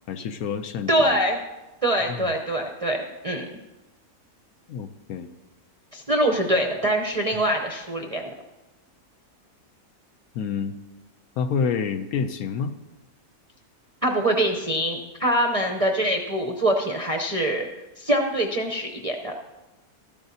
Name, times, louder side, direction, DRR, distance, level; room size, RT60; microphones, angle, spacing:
voice 1, 0.1-1.2 2.0-2.3 4.7-5.3 7.3-7.4 10.3-10.8 11.4-12.7, left 6 dB, 70° left, 9 dB, 1.1 m, -28 dB
voice 2, 0.9-1.4 1.8-3.0 3.2-3.5 5.9-8.3 14.0-17.7 18.0-19.3, right 1 dB, 40° right, 2 dB, 0.5 m, -24 dB
14.0 x 12.0 x 2.7 m, 1.1 s
omnidirectional pair, 1.7 m